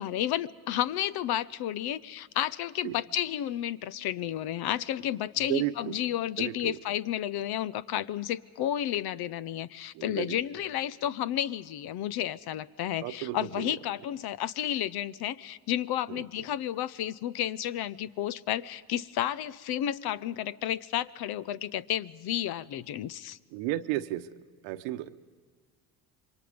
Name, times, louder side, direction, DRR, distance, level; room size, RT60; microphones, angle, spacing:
voice 1, 0.0-23.4, left 11 dB, 60° left, 18 dB, 0.8 m, -32 dB
voice 2, 5.5-6.0 6.4-6.8 9.9-10.4 13.0-13.8 16.1-16.2 23.5-24.3 24.6-25.1, right 14 dB, 80° right, 11 dB, 1.1 m, -33 dB
27.0 x 23.0 x 5.2 m, 1.5 s
supercardioid pair, 80°, 43 cm